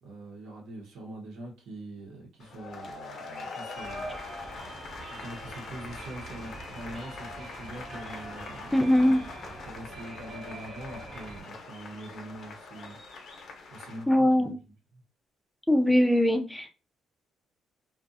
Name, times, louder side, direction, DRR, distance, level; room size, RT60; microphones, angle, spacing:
voice 1, 0.0-4.4 5.1-14.6 14.9-15.0, right 1 dB, 80° right, -2 dB, 1.0 m, -44 dB
sound 1, 2.4-14.0, left 3 dB, 60° left, 0.6 m, -43 dB
sound 2, 3.7-11.4, right 3 dB, 40° right, 0.7 m, -45 dB
voice 2, 8.7-9.2 14.1-14.6 15.7-16.7, left 1 dB, 5° left, 4 dB, 0.5 m, -22 dB
2.5 x 2.2 x 2.6 m, 0.32 s
cardioid pair, 90°, 0 cm